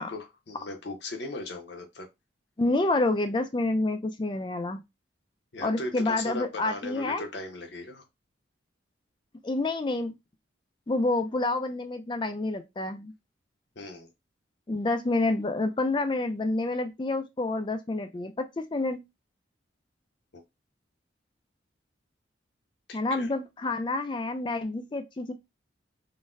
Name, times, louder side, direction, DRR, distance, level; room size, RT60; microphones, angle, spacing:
voice 1, 0.0-2.1 5.5-8.0 13.8-14.1 20.3-20.4 22.9-23.3, left 2 dB, 60° left, 0.7 m, -38 dB
voice 2, 2.6-4.8 5.6-7.2 9.4-10.1 10.9-13.1 14.7-19.0 22.9-25.3, left 2 dB, 25° left, 0.3 m, -28 dB
3.9 x 2.1 x 2.5 m
head